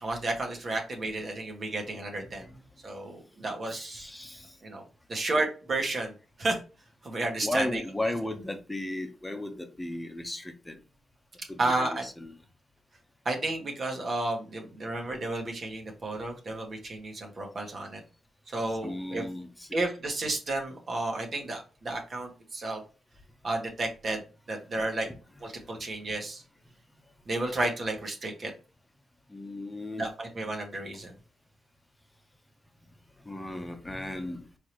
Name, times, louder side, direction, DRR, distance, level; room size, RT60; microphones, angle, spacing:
voice 1, 0.0-2.5 2.8-4.0 4.6-4.8 5.1-6.6 7.0-7.8 11.6-12.0 13.2-18.0 18.5-19.2 19.7-22.8 23.4-24.2 24.5-25.1 25.4-26.4 27.3-28.5 30.0-31.1, right 2 dB, 50° right, 1.6 m, -32 dB
voice 2, 2.2-2.6 3.7-4.6 7.4-10.8 11.5-12.3 18.7-19.8 29.3-30.1 33.2-34.5, left 1 dB, 15° left, 1.0 m, -36 dB
4.6 x 3.5 x 3.0 m
supercardioid pair, 60°, 0 cm